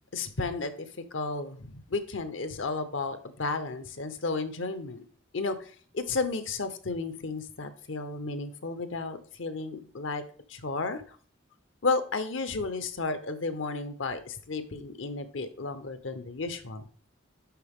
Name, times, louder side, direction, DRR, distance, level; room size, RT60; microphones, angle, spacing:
voice 1, 0.1-0.7 1.1-5.0 5.3-5.7 5.9-10.2 10.5-11.0 11.8-16.8, left 3 dB, 75° left, 10 dB, 0.8 m, -33 dB
10.5 x 4.0 x 3.6 m, 0.43 s
head